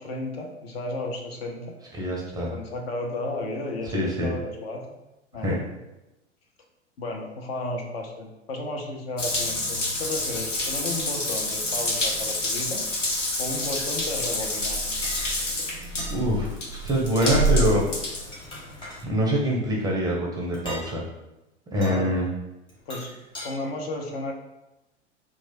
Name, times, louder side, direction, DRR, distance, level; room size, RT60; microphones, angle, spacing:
voice 1, 0.0-1.8 2.4-4.9 5.3-5.8 7.0-12.9 13.4-14.9 21.8-22.2 22.9-23.2 23.4-24.3, left 2 dB, 55° left, 2 dB, 0.7 m, -33 dB
voice 2, 2.0-2.5 3.9-4.3 5.4-5.5 15.9-16.5 16.8-17.8 19.0-21.0 21.7-22.3, right 1 dB, 10° right, -2 dB, 0.5 m, -24 dB
Water tap faucet / Bathtub (filling or washing) / Drip, 9.2-19.0, left 1 dB, 85° left, 0.7 m, -27 dB
sound 1, 15.0-15.3 16.0-16.2 17.1-17.4 18.1-19.0 20.5-20.9 21.8-22.0 22.7-23.5, equal, 15° left, 1.0 m, -39 dB
3.0 x 2.4 x 4.1 m, 0.96 s
figure-of-eight pair, 90°, 36 cm